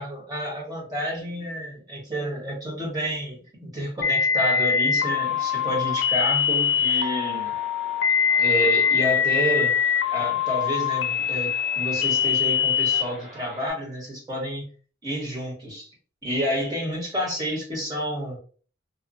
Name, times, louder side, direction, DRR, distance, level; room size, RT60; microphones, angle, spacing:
voice 1, 0.0-7.5 8.4-9.7 10.1-14.6 15.0-15.9 16.2-18.4, equal, 20° right, -5 dB, 1.3 m, -29 dB
sound 1, 4.0-13.0, left 7 dB, 70° left, 0.5 m, -23 dB
sound 2, 5.0-13.7, equal, 65° right, 1.2 m, -44 dB
2.9 x 2.3 x 2.6 m, 0.40 s
head